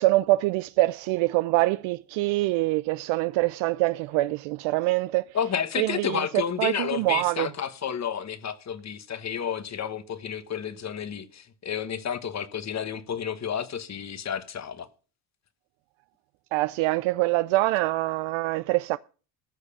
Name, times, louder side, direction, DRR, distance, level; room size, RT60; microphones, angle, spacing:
voice 1, 0.0-5.3 5.8-6.2 6.6-7.5 16.5-19.0, right 19 dB, 80° right, 0.5 m, -24 dB
voice 2, 5.3-14.9, left 8 dB, 35° left, 1.2 m, -31 dB
14.0 x 6.6 x 7.1 m
cardioid pair, 105°, 46 cm